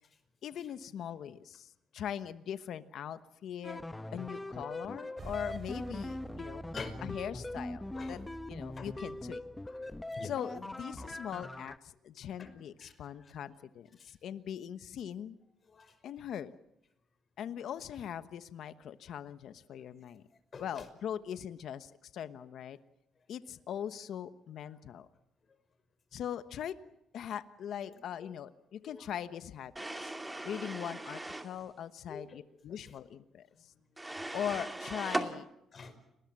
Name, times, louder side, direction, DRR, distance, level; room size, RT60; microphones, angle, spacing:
voice 1, 0.4-3.8 4.1-6.6 7.0-8.2 8.5-9.4 10.2-15.4 16.0-16.5 17.4-20.2 20.6-22.8 23.3-25.1 26.1-26.8 27.1-30.1 30.4-33.7 34.3-35.5, left 9 dB, 70° left, 12 dB, 1.1 m, -41 dB
sound 1, 3.6-11.8, left 1 dB, 10° left, 0.9 m, -42 dB
sound 2, 5.2-10.0, right 3 dB, 40° right, 2.8 m, -49 dB
voice 2, 6.6-7.0 7.9-8.2 8.8-8.9 9.7-10.3 11.0-11.1 12.4-12.5 12.8-12.9 13.2-13.3 14.0-14.1 15.7-15.9 20.5-20.9 27.8-28.3 28.8-29.1 32.1-32.4 33.6-33.7 35.7-36.0, left 5 dB, 45° left, 10 dB, 5.4 m, -47 dB
sound 3, 29.8-31.5 34.0-35.3, right 1 dB, 10° right, 2.5 m, -38 dB
30.0 x 20.5 x 7.6 m, 0.85 s
cardioid pair, 90°, 0 cm